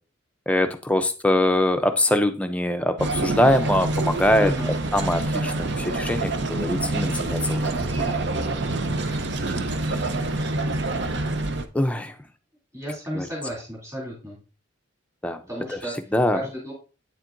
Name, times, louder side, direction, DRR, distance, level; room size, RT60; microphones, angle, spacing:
voice 1, 0.5-4.5 4.9-8.1 11.7-12.1 13.1-13.3 15.2-15.4 15.7-15.8 16.1-16.4, left 1 dB, 5° left, 7 dB, 0.5 m, -23 dB
sound 1, 3.0-11.7, right 2 dB, 55° right, 0.6 m, -26 dB
voice 2, 4.4-4.8 12.7-14.4 15.5-15.9 16.3-16.7, equal, 15° right, -5 dB, 2.7 m, -32 dB
9.1 x 7.3 x 2.6 m, 0.34 s
head